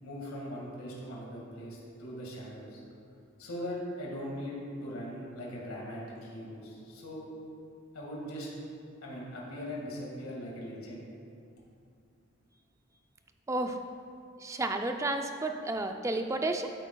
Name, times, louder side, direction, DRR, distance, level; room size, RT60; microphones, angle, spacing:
voice 1, 0.0-2.8 3.4-7.3 7.9-8.5 9.0-11.0, equal, 90° left, -4 dB, 1.9 m, -40 dB
voice 2, 13.5-13.8 14.4-16.7, right 2 dB, 15° right, 5 dB, 0.3 m, -31 dB
13.0 x 8.3 x 2.3 m, 2.5 s
head